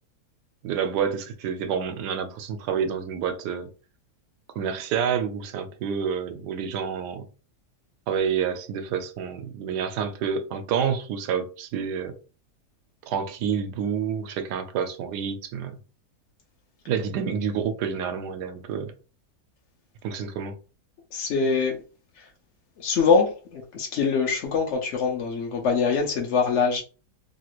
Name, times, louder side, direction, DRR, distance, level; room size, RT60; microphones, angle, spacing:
voice 1, 0.6-3.7 4.6-7.3 8.1-12.2 13.1-15.8 16.9-18.9 20.0-20.5, right 7 dB, 85° right, 1.2 m, -28 dB
voice 2, 21.1-21.8 22.2-22.3 22.8-26.8, left 5 dB, 65° left, 0.7 m, -23 dB
3.1 x 2.4 x 2.9 m
omnidirectional pair, 1.7 m